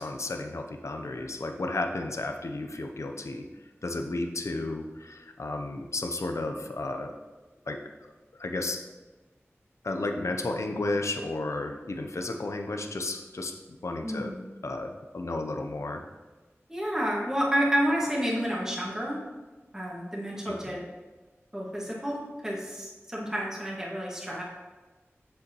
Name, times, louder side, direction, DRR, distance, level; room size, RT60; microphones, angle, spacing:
voice 1, 0.0-3.4 3.8-7.1 7.7-8.1 8.4-8.8 9.8-13.5 13.8-14.3 14.6-16.0 20.5-20.8, left 2 dB, 80° left, 4 dB, 0.6 m, -33 dB
voice 2, 14.0-14.4 16.7-19.2 19.7-20.8 21.5-24.4, equal, 10° right, -4 dB, 1.7 m, -30 dB
7.6 x 6.8 x 3.0 m, 1.2 s
wide cardioid pair, 60°, 5 cm